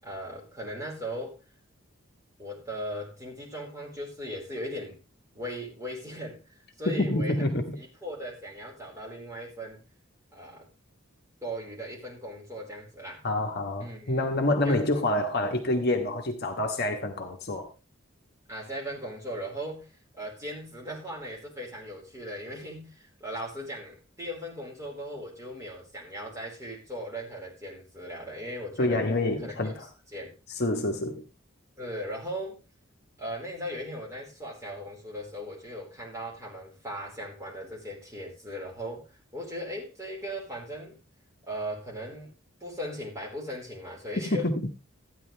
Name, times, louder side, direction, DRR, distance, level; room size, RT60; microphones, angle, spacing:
voice 1, 0.0-1.4 2.4-5.0 5.3-6.4 6.8-7.5 7.8-9.8 10.3-10.6 11.4-13.2 13.8-14.2 14.6-14.8 18.5-29.0 29.4-29.7 30.1-30.3 31.8-32.6 33.2-41.0 41.5-42.3 42.6-44.5, equal, 15° right, 4.8 m, -38 dB
voice 2, 6.8-7.8 13.2-17.7 28.8-29.9 30.6-31.2 44.2-44.7, left 1 dB, 50° left, 1.3 m, -27 dB
13.5 x 10.0 x 3.4 m
head